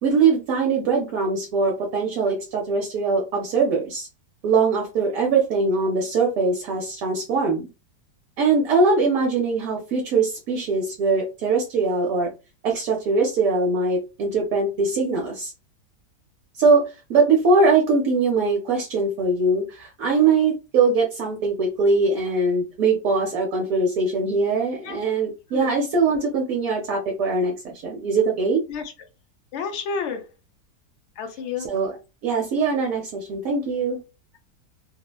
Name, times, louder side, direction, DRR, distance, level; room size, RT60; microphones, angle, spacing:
voice 1, 0.0-4.1 4.4-7.7 8.4-12.3 12.6-15.5 16.5-16.8 17.1-28.6 31.6-31.9 32.2-34.0, right 4 dB, 65° right, 1.0 m, -22 dB
voice 2, 29.5-30.2 31.2-31.8, left 6 dB, 65° left, 0.7 m, -30 dB
2.8 x 2.1 x 2.2 m
omnidirectional pair, 1.8 m